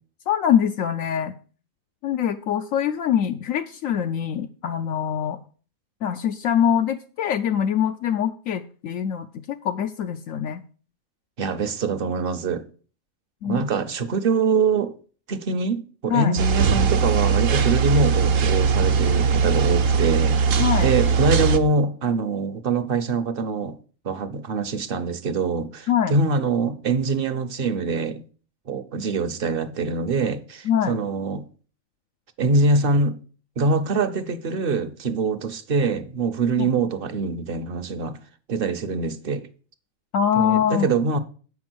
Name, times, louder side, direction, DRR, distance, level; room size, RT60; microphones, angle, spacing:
voice 1, 0.3-1.3 2.0-5.4 6.0-10.6 13.4-13.6 16.1-16.3 20.6-20.9 25.9-26.2 30.6-31.0 36.6-36.7 40.1-40.9, left 9 dB, 75° left, 1.0 m, -23 dB
voice 2, 11.4-12.6 13.4-15.0 15.3-20.4 20.8-23.8 24.0-28.2 28.7-31.4 32.4-33.2 33.6-38.2 38.5-39.5 40.3-41.2, right 4 dB, 50° right, 0.9 m, -24 dB
sound 1, 16.4-21.6, right 6 dB, 70° right, 1.2 m, -20 dB
8.2 x 6.0 x 6.1 m
omnidirectional pair, 1.4 m